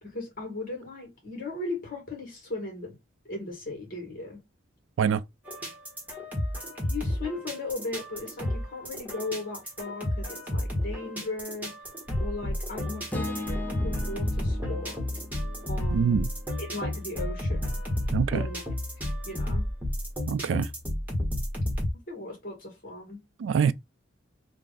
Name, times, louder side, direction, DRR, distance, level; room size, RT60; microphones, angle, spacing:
voice 1, 0.0-3.0 3.3-4.4 6.8-11.8 12.2-15.0 15.7-16.3 16.6-17.8 18.3-18.8 19.2-19.6 22.1-23.2, left 2 dB, 50° left, 2.0 m, -37 dB
sound 1, 5.5-21.9, left 1 dB, 10° right, 1.3 m, -31 dB
sound 2, 13.1-17.4, left 2 dB, 10° left, 0.6 m, -40 dB
voice 2, 15.9-16.3 18.1-18.4 20.3-20.7 23.4-23.7, right 7 dB, 75° right, 0.3 m, -24 dB
3.3 x 2.5 x 3.8 m
head